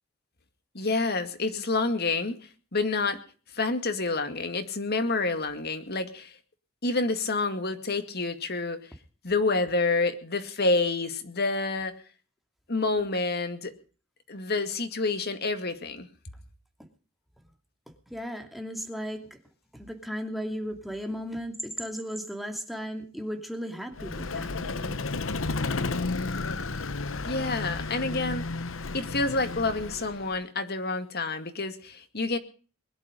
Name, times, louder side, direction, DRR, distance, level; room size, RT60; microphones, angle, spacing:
voice 1, 0.7-2.4 2.7-3.2 3.5-6.3 6.8-8.8 9.2-11.9 12.7-13.7 14.3-16.1 27.2-28.4 28.9-32.4, left 3 dB, 50° left, 9 dB, 2.2 m, -28 dB
voice 2, 18.1-19.2 19.7-25.1, equal, ahead, 4 dB, 2.7 m, -35 dB
Vehicle, 23.9-30.4, left 3 dB, 65° left, 1.0 m, -32 dB
21.5 x 11.5 x 5.2 m, 0.40 s
head